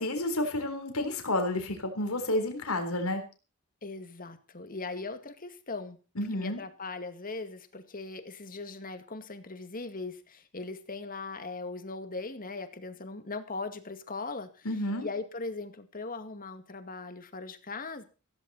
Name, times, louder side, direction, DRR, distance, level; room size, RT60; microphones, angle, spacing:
voice 1, 0.0-3.2 6.2-6.6 14.6-15.1, left 1 dB, 90° left, 5 dB, 3.9 m, -30 dB
voice 2, 3.8-6.0 6.3-14.7 15.0-18.0, left 3 dB, 40° left, 8 dB, 2.2 m, -39 dB
16.0 x 15.5 x 4.3 m, 0.34 s
head